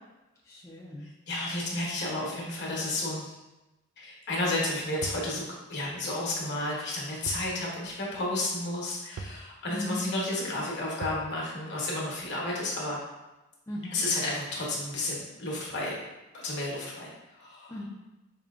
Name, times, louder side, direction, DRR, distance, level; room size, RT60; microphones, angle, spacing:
voice 1, 0.5-1.1 9.7-10.1 13.7-14.0 17.7-17.8, left 1 dB, 15° left, -6 dB, 0.5 m, -37 dB
voice 2, 1.0-3.3 4.0-13.0 13.9-16.0 16.3-17.8, left 2 dB, 60° left, -4 dB, 1.0 m, -32 dB
sound 1, 5.0-5.3 7.3-7.5 7.8-7.9 9.2-9.5 11.0-11.3, right 3 dB, 85° right, 0.3 m, -39 dB
4.8 x 2.8 x 2.4 m, 1.0 s
head